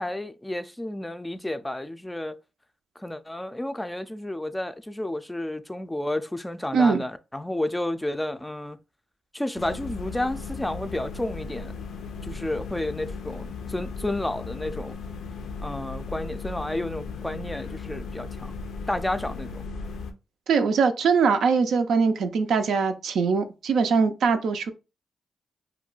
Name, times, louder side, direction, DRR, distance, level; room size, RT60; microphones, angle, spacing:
voice 1, 0.0-2.4 3.0-8.8 9.3-11.7 12.2-15.0 15.6-18.5 18.9-19.7, left 1 dB, 10° left, 0.3 m, -31 dB
voice 2, 6.7-7.0 20.5-24.7, right 5 dB, 80° right, 0.4 m, -22 dB
sound 1, 9.6-20.1, left 4 dB, 85° left, 0.4 m, -36 dB
2.3 x 2.2 x 3.7 m
cardioid pair, 60°, 0 cm